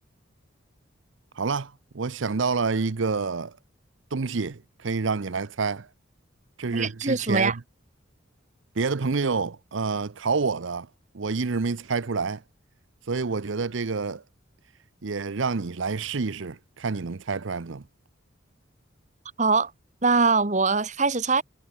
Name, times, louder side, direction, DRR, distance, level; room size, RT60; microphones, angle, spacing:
voice 1, 1.4-3.6 4.1-5.9 6.6-7.6 8.8-10.9 11.1-12.4 13.1-14.2 15.0-17.8, right 4 dB, 75° right, 0.7 m, -28 dB
voice 2, 6.7-7.6 19.4-19.7 20.0-21.4, right 4 dB, 35° right, 1.2 m, -22 dB
head